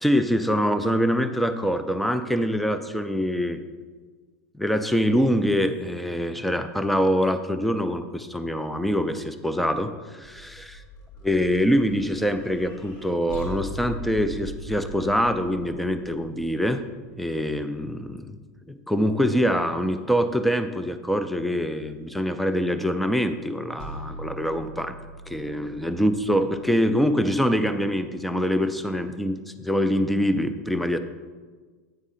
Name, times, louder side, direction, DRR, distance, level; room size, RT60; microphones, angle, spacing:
voice 1, 0.0-3.6 4.6-10.6 11.2-16.8 17.2-18.4 18.7-24.9 25.3-31.0, equal, ahead, 10 dB, 0.4 m, -24 dB
sound 1, 10.2-17.5 23.8-27.9, equal, 50° left, 1.5 m, -41 dB
9.0 x 3.6 x 5.6 m, 1.4 s
supercardioid pair, 135°, 8 cm